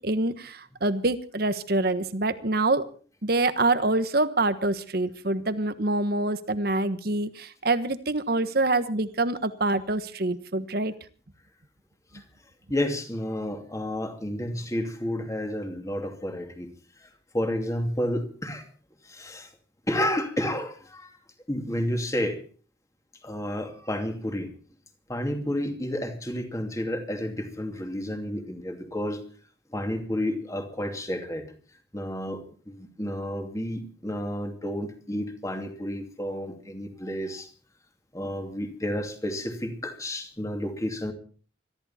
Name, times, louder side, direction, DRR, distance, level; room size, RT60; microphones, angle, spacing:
voice 1, 0.0-2.9 3.2-10.9, right 2 dB, 55° right, 12 dB, 1.3 m, -26 dB
voice 2, 12.7-16.7 17.0-18.7 19.0-19.5 19.9-21.2 21.5-22.4 23.2-24.5 25.1-29.2 29.7-31.5 31.9-37.5 38.1-41.1, left 1 dB, 15° left, 5 dB, 2.6 m, -31 dB
22.5 x 14.0 x 4.3 m, 0.40 s
head